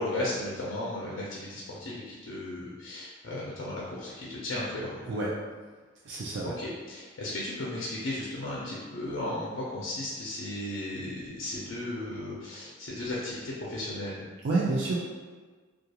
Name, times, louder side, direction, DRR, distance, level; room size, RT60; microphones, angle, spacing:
voice 1, 0.0-5.2 6.6-14.2, left 1 dB, 75° left, -6 dB, 0.5 m, -35 dB
voice 2, 6.0-6.5 14.4-15.0, right 3 dB, 60° right, -6 dB, 0.4 m, -28 dB
2.3 x 2.3 x 2.8 m, 1.4 s
head